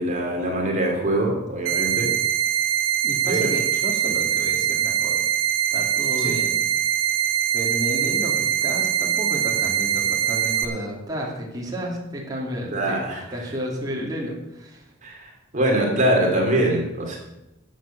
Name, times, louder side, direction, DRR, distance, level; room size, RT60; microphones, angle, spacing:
voice 1, 0.0-2.1 3.3-3.5 6.2-6.4 12.7-13.2 15.0-17.2, right 1 dB, 40° right, 0 dB, 2.8 m, -23 dB
sound 1, 1.7-10.7, right 9 dB, 85° right, 1.5 m, -23 dB
voice 2, 3.0-5.3 5.7-6.6 7.5-13.0 13.3-14.9, equal, 20° right, -3 dB, 2.7 m, -32 dB
11.5 x 7.8 x 7.4 m, 0.93 s
head